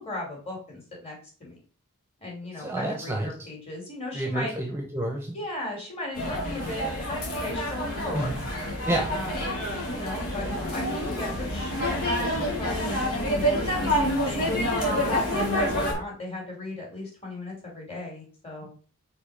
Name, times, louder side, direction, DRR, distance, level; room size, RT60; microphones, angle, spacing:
voice 1, 0.0-1.6 2.2-4.5 5.3-8.3 9.1-14.5 14.8-18.7, left 2 dB, 30° left, -2 dB, 3.0 m, -37 dB
voice 2, 2.6-3.3 4.1-5.4 8.1-8.4 8.8-9.1 18.6-18.7, right 1 dB, 10° right, 1 dB, 0.8 m, -29 dB
sound 1, 6.1-15.9, equal, 85° left, 2.4 m, -27 dB
5.3 x 4.5 x 5.1 m, 0.40 s
head